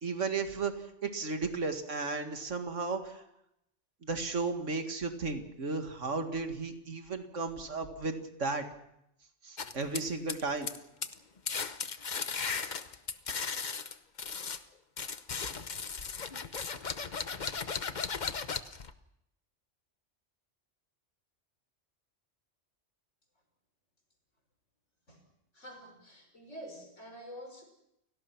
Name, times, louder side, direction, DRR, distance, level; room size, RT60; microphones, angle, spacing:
voice 1, 0.0-3.2 4.0-8.1 8.4-8.7 9.4-10.7, right 4 dB, 90° right, 6 dB, 2.3 m, -34 dB
sound 1, 9.6-10.8 11.0-11.2 11.5-14.6 15.0-18.9, left 5 dB, 40° left, 1.0 m, -36 dB
voice 2, 25.5-27.6, equal, 80° left, 3 dB, 5.9 m, -47 dB
29.5 x 17.5 x 6.1 m, 0.81 s
omnidirectional pair, 1.2 m